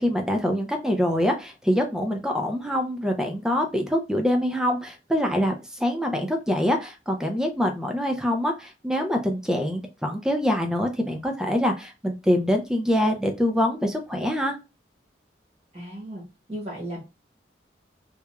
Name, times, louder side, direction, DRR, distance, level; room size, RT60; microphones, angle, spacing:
voice 1, 0.0-5.5 5.8-14.6, equal, 5° right, 3 dB, 0.3 m, -24 dB
voice 2, 15.7-16.2 16.5-17.0, right 1 dB, 30° right, -3 dB, 0.9 m, -35 dB
2.9 x 2.2 x 2.2 m, 0.28 s
head